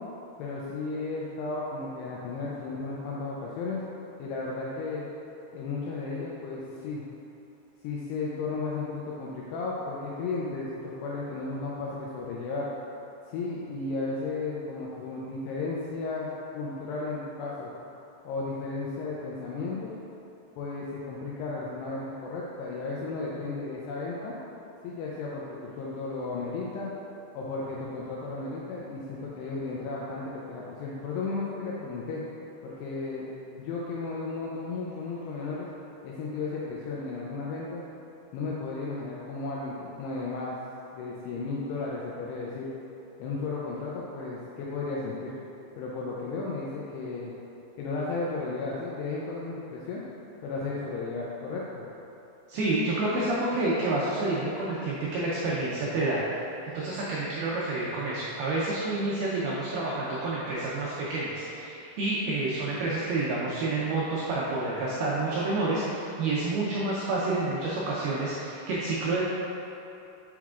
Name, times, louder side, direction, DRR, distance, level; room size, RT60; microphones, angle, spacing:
voice 1, 0.4-3.8 4.2-5.1 5.5-7.0 7.8-12.7 13.3-16.3 16.5-17.7 18.2-19.9 20.6-24.4 24.8-26.9 27.3-32.2 32.6-33.3 33.6-35.7 36.0-37.8 38.3-40.6 40.9-42.7 43.2-45.3 45.8-47.3 47.8-50.1 50.4-51.9, left 3 dB, 85° left, -5 dB, 2.4 m, -34 dB
voice 2, 52.5-56.2 56.7-69.2, right 2 dB, 85° right, -6 dB, 2.2 m, -29 dB
7.4 x 5.8 x 2.4 m, 2.9 s
omnidirectional pair, 5.3 m